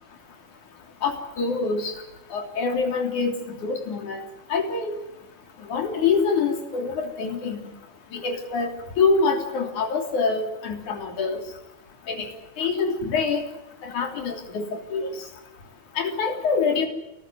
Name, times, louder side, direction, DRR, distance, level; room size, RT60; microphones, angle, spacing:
voice 1, 1.0-1.9 2.3-3.4 3.6-4.2 4.5-5.0 5.7-7.6 8.1-8.7 9.0-11.4 12.1-12.3 12.6-13.4 13.8-15.1 16.0-16.9, left 4 dB, 80° left, 4 dB, 4.8 m, -25 dB
28.5 x 14.5 x 9.4 m, 0.98 s
omnidirectional pair, 3.4 m